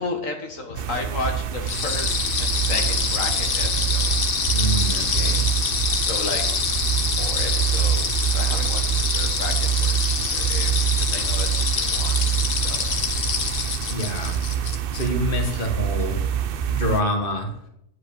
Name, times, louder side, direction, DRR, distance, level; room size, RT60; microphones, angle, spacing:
voice 1, 0.0-4.1 6.0-6.5 7.2-8.8 9.1-12.1 12.5-12.8 15.4-15.6, left 3 dB, 75° left, 3 dB, 2.2 m, -33 dB
sound 1, 0.8-17.0, right 9 dB, 55° right, 0.7 m, -25 dB
sound 2, 1.7-15.1, left 6 dB, 60° left, 1.4 m, -25 dB
voice 2, 4.5-5.5 13.9-14.4 14.9-17.7, equal, 40° left, 4 dB, 1.8 m, -27 dB
9.9 x 7.9 x 7.0 m, 0.75 s
omnidirectional pair, 1.4 m